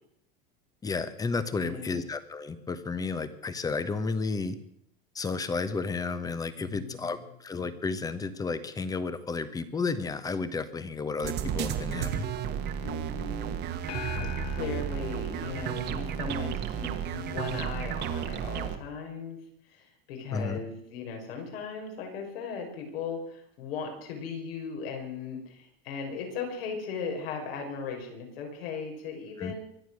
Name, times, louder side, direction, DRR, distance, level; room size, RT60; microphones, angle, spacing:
voice 1, 0.8-4.6 5.1-12.2 20.3-20.6 29.4-29.5, left 4 dB, 10° left, 13 dB, 1.0 m, -32 dB
voice 2, 1.5-2.0 6.6-7.3 12.1-12.4 12.8-13.6 14.4-19.4 19.6-29.6, left 5 dB, 80° left, 2 dB, 5.9 m, -38 dB
sound 1, 11.2-18.8, right 9 dB, 35° right, 1.4 m, -33 dB
sound 2, 13.9-16.5, left 3 dB, 55° left, 3.3 m, -39 dB
24.0 x 8.9 x 6.4 m, 0.71 s
supercardioid pair, 150°, 29 cm